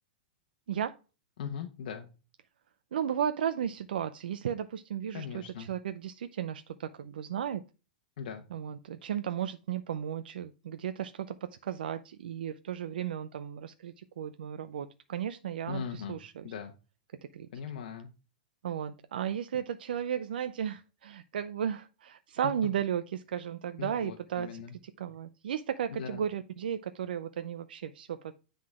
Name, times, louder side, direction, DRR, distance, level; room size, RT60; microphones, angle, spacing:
voice 1, 1.4-2.1 5.1-5.7 8.2-8.4 15.7-16.2 16.4-16.7 17.5-18.1 23.8-24.7 25.9-26.2, left 7 dB, 65° left, 4 dB, 1.0 m, -39 dB
voice 2, 2.9-7.6 8.5-16.5 17.3-17.5 18.6-28.3, right 9 dB, 85° right, 10 dB, 0.5 m, -35 dB
9.5 x 3.9 x 4.8 m, 0.32 s
supercardioid pair, 155°, 5 cm